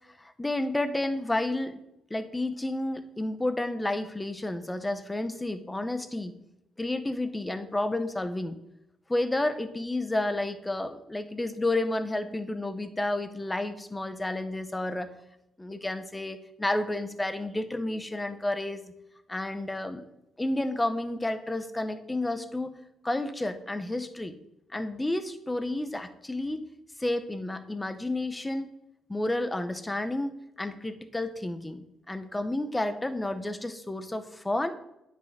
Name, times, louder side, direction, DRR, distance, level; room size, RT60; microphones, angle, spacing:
voice 1, 0.2-1.8 2.1-6.3 6.8-8.6 9.1-15.1 15.6-18.8 19.3-20.0 20.4-22.7 23.0-24.4 24.7-26.6 27.0-28.7 29.1-34.7, left 2 dB, 15° left, 9 dB, 1.1 m, -31 dB
9.8 x 6.5 x 5.1 m, 0.84 s
cardioid pair, 90°, 0 cm